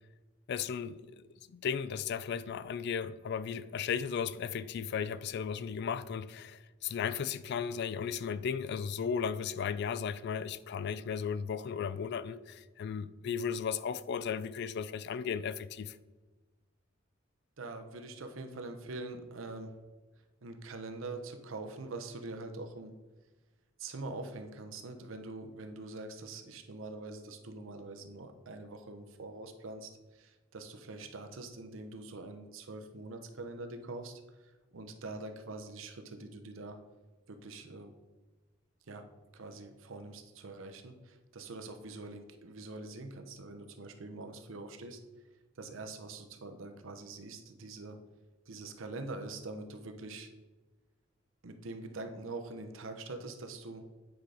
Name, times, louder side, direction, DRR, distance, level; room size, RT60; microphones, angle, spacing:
voice 1, 0.5-16.0, left 7 dB, 60° left, 0.3 m, -35 dB
voice 2, 17.6-19.8 20.4-22.9 23.8-36.8 37.3-37.9 38.9-45.0 45.5-48.0 48.5-50.3 51.4-53.9, right 2 dB, 80° right, 0.7 m, -44 dB
8.9 x 3.9 x 4.9 m
head